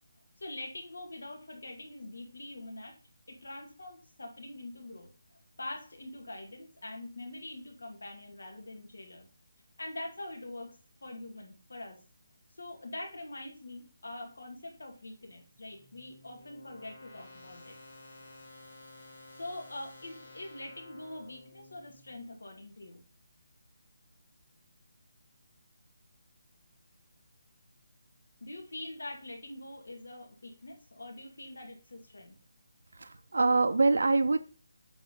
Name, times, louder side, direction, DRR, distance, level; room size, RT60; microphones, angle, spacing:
voice 1, 0.4-3.0 3.3-5.1 5.6-9.3 9.8-12.0 12.6-17.7 19.3-23.0 28.4-32.4, left 1 dB, 90° left, 2 dB, 2.2 m, -44 dB
sound 1, 15.2-22.3, left 2 dB, 30° left, 1.9 m, -53 dB
voice 2, 32.9-34.4, right 3 dB, 75° right, 7 dB, 0.6 m, -25 dB
8.0 x 3.8 x 3.8 m, 0.36 s
hypercardioid pair, 175°, 0 cm